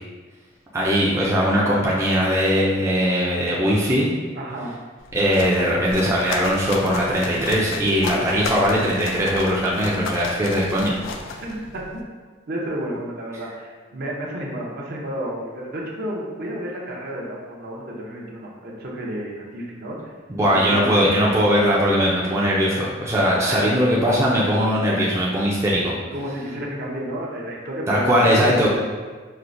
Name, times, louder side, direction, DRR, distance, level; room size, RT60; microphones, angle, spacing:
voice 1, 0.7-4.2 5.1-11.0 20.3-25.9 27.9-28.7, equal, 15° right, -6 dB, 0.4 m, -20 dB
voice 2, 4.4-4.7 11.4-12.0 12.5-20.1 20.5-21.5 23.4-23.7 25.0-25.1 26.1-28.7, right 1 dB, 55° right, -3 dB, 0.6 m, -31 dB
sound 1, 5.0-12.0, left 4 dB, 85° left, 0.3 m, -33 dB
4.3 x 2.0 x 2.5 m, 1.4 s
head